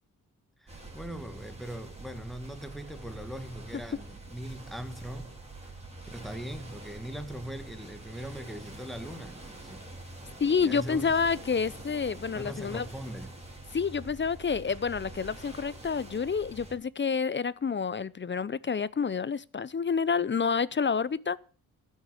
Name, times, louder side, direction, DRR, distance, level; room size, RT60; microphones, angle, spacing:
voice 1, 0.6-5.3 6.1-9.9 10.6-11.1 12.3-13.3, equal, ahead, 2.0 m, -40 dB
sound 1, 0.7-16.8, right 2 dB, 15° right, 4.4 m, -45 dB
voice 2, 10.4-12.8 13.7-21.4, left 6 dB, 30° left, 0.6 m, -28 dB
13.5 x 6.6 x 7.5 m
supercardioid pair, 55°, 36 cm